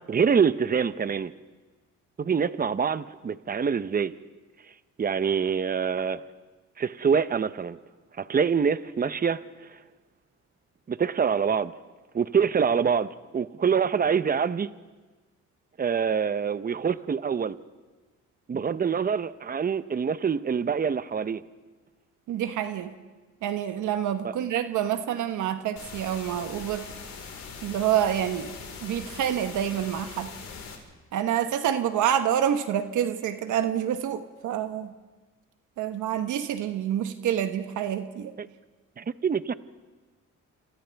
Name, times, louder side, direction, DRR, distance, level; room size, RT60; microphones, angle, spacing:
voice 1, 0.1-1.3 2.2-4.1 5.0-6.2 6.8-7.8 8.2-9.4 10.9-11.7 12.1-14.7 15.8-17.6 18.5-21.4 24.2-24.3 38.4-38.5 39.0-39.5, right 6 dB, 30° right, 0.8 m, -25 dB
voice 2, 22.3-22.9 23.4-26.9 27.6-28.5 28.8-30.3 31.1-34.9 35.8-38.3, right 10 dB, 80° right, 1.2 m, -27 dB
sound 1, 25.8-30.8, left 5 dB, 65° left, 4.4 m, -41 dB
28.0 x 27.5 x 3.5 m
cardioid pair, 90°, 30 cm